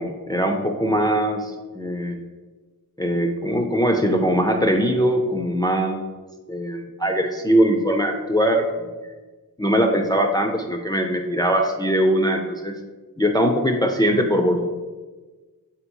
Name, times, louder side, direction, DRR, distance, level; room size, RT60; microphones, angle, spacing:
voice 1, 0.0-2.2 3.0-6.1 6.5-8.7 9.0-9.1 9.6-12.7 13.2-14.6, equal, 10° left, 3 dB, 0.3 m, -21 dB
3.7 x 2.7 x 4.4 m, 1.3 s
wide cardioid pair, 40°, 36 cm